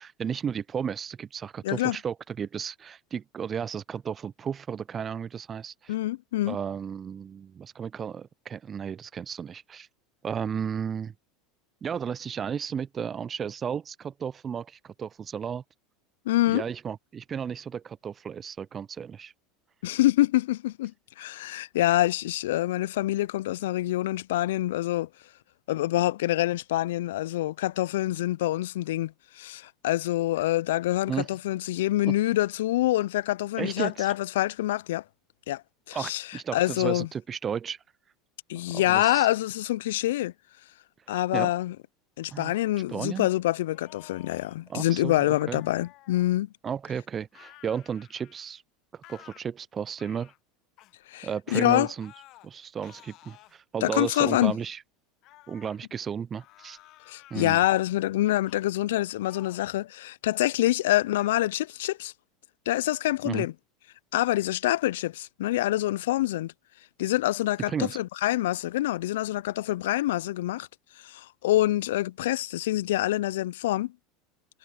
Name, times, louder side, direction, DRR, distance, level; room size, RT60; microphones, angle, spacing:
voice 1, 0.0-5.9 6.5-9.9 10.2-11.1 11.8-15.6 16.5-19.3 31.1-31.3 32.1-32.2 33.6-34.1 35.9-37.8 38.7-39.3 41.3-41.5 42.3-42.5 42.9-43.3 44.7-45.6 46.6-48.6 48.9-50.3 51.2-52.1 52.4-54.8 55.5-56.8 57.3-57.6 63.2-63.5 67.7-68.0, right 7 dB, 30° right, 0.4 m, -33 dB
voice 2, 1.6-2.0 5.9-6.6 16.3-16.6 19.8-20.9 21.2-25.1 25.7-35.0 35.5-35.6 35.9-36.2 36.5-37.1 38.5-40.3 41.1-41.8 42.2-46.5 51.1-51.9 53.8-54.5 57.1-62.1 62.7-63.5 64.1-66.5 67.0-70.7 71.0-73.9, left 15 dB, 75° left, 0.4 m, -26 dB
sound 1, 43.6-44.6 45.2-46.3 47.3-48.6 49.0-49.4 50.0-50.4 50.8-50.9 51.5-52.5 52.8-53.6 54.3-54.6 55.2-55.8 56.3-57.5 58.5-58.7 59.2-59.7 60.2-60.6 61.1-61.3, left 17 dB, 55° left, 1.3 m, -53 dB
hypercardioid pair, 85°, 0 cm